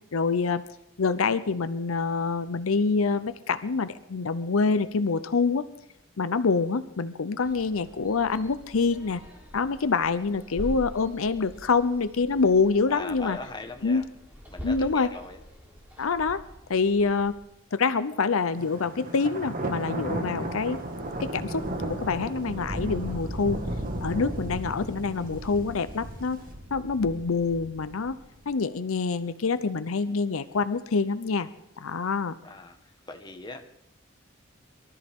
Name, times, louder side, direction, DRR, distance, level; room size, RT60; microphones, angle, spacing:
voice 1, 0.1-0.6 1.0-5.7 6.2-9.2 9.5-13.4 13.8-14.0 14.6-15.1 16.0-16.4 16.7-17.4 17.7-20.8 21.2-21.6 21.9-23.6 24.0-26.4 26.7-28.2 28.5-31.5 31.8-32.4, left 4 dB, 80° left, 13 dB, 0.7 m, -26 dB
sound 1, 7.4-17.4, equal, 10° right, 3.5 m, -44 dB
voice 2, 12.9-14.0 14.5-15.4 32.4-32.8 33.1-33.6, left 3 dB, 20° left, 4 dB, 1.4 m, -39 dB
Thunder, 18.5-28.4, right 1 dB, 45° right, 2.0 m, -34 dB
23.0 x 13.0 x 3.7 m, 0.84 s
head